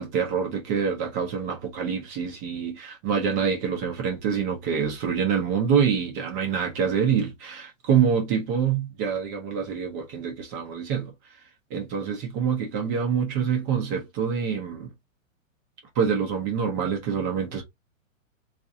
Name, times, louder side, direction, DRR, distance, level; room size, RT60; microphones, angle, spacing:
voice 1, 0.0-11.1 11.7-14.9 16.0-17.6, right 7 dB, 15° right, 0.3 m, -26 dB
3.7 x 2.4 x 2.6 m
hypercardioid pair, 130°, 40 cm